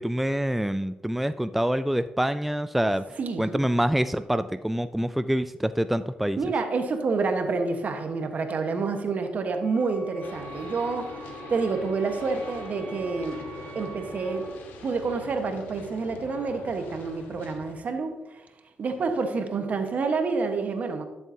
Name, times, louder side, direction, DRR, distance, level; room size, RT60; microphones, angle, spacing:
voice 1, 0.0-6.4, equal, 5° right, 0.3 m, -26 dB
voice 2, 3.2-3.6 6.4-13.5 13.7-14.5 14.8-18.4 18.8-21.0, right 4 dB, 55° right, 1.3 m, -28 dB
Wind instrument woodwind instrument, 9.6-14.5, right 5 dB, 85° right, 2.4 m, -47 dB
sound 1, 10.2-17.7, left 2 dB, 85° left, 1.3 m, -42 dB
12.0 x 7.2 x 2.8 m
supercardioid pair, 65°, 3 cm